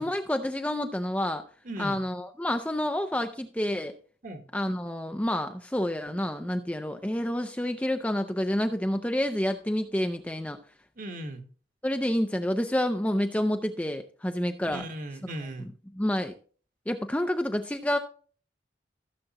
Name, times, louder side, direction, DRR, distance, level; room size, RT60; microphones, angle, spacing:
voice 1, 0.0-1.4 1.8-3.9 4.5-10.6 11.8-14.8 16.0-16.3 16.9-18.0, left 1 dB, 10° left, 6 dB, 0.5 m, -28 dB
voice 2, 1.6-2.0 4.2-4.4 11.0-11.4 14.7-15.7, right 1 dB, 45° right, 6 dB, 1.3 m, -37 dB
15.5 x 6.8 x 2.9 m, 0.42 s
head